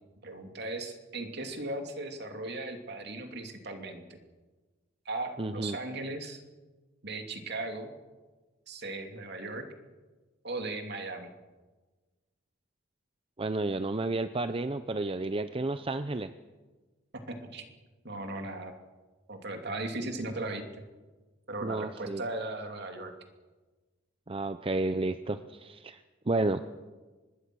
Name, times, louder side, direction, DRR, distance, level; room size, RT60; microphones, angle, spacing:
voice 1, 0.2-4.0 5.0-6.4 7.0-7.9 8.7-9.6 10.4-11.3 17.3-17.6 18.0-18.7 19.3-20.6 21.5-23.1, right 2 dB, 55° right, 4 dB, 2.8 m, -37 dB
voice 2, 5.4-5.8 13.4-16.3 21.6-22.2 24.3-26.6, right 2 dB, 30° right, 10 dB, 0.6 m, -31 dB
24.5 x 20.5 x 6.3 m, 1.3 s
head